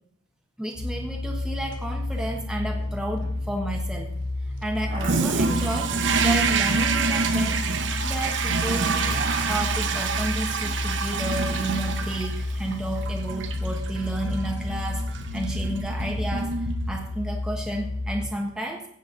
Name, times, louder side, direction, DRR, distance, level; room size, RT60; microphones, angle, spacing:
voice 1, 0.6-4.1 4.6-7.6 8.0-9.2 9.5-16.5 16.9-18.9, right 1 dB, 5° right, 0 dB, 1.2 m, -32 dB
sound 1, 0.7-18.3, left 2 dB, 80° left, 3.0 m, -31 dB
sound 2, 1.7-1.8 2.0-2.4 2.7-3.9 4.6-8.5 8.8-11.1 11.3-12.3, right 2 dB, 45° right, 2.0 m, -41 dB
Toilet flush, 5.0-17.3, right 4 dB, 65° right, 0.9 m, -27 dB
15.5 x 8.3 x 3.9 m, 0.69 s
head